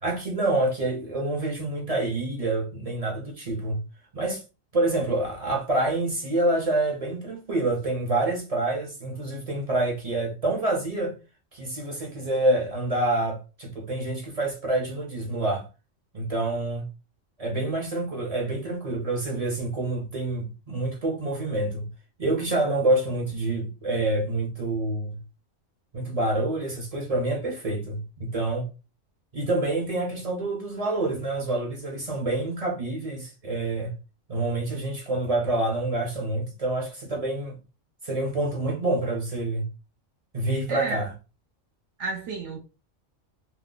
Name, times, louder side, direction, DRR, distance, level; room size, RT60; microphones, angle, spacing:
voice 1, 0.0-3.8 4.1-4.4 4.7-11.2 11.5-15.7 16.1-16.8 17.4-21.9 22.2-25.2 25.9-28.7 29.3-33.9 34.3-37.6 38.0-39.6 40.3-41.1, right 2 dB, 40° right, 0.5 m, -27 dB
voice 2, 40.7-41.0 42.0-42.6, right 3 dB, 70° right, 0.8 m, -32 dB
2.2 x 2.1 x 3.6 m
omnidirectional pair, 1.4 m